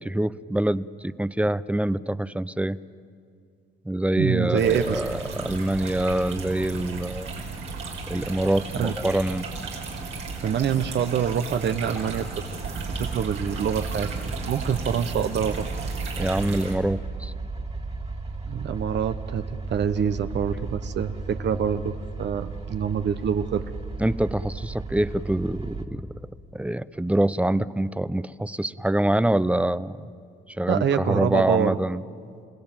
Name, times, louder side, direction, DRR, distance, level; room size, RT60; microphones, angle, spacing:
voice 1, 0.0-2.8 3.9-7.3 8.1-9.5 16.2-17.3 24.0-26.0 26.5-30.0 30.6-32.0, right 1 dB, 5° right, 17 dB, 0.6 m, -25 dB
voice 2, 4.2-5.0 8.7-8.9 10.4-12.4 13.0-14.2 14.4-15.9 18.5-23.6 30.7-31.8, right 8 dB, 60° right, 10 dB, 1.1 m, -26 dB
sound 1, 4.6-16.7, right 4 dB, 85° right, 5.2 m, -35 dB
sound 2, 12.8-25.8, right 3 dB, 30° right, 2.5 m, -35 dB
29.5 x 17.0 x 9.0 m, 2.3 s
cardioid pair, 90°, 20 cm